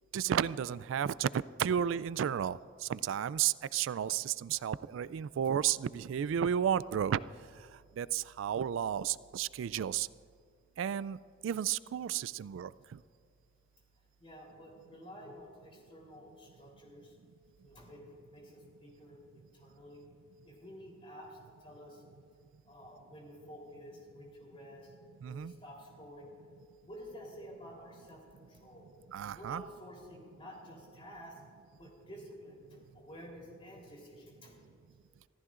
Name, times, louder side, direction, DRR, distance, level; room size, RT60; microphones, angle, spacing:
voice 1, 0.1-1.3 1.6-7.2 8.0-10.1 10.8-11.2 11.4-12.7 25.2-25.5 29.1-29.6, right 9 dB, 85° right, 18 dB, 0.3 m, -32 dB
voice 2, 14.2-17.1 17.6-20.0 20.4-22.0 22.6-24.9 25.2-26.3 26.8-28.9 29.3-31.4 31.8-34.5, equal, 30° left, -2 dB, 3.5 m, -51 dB
25.5 x 14.5 x 2.5 m, 2.2 s
head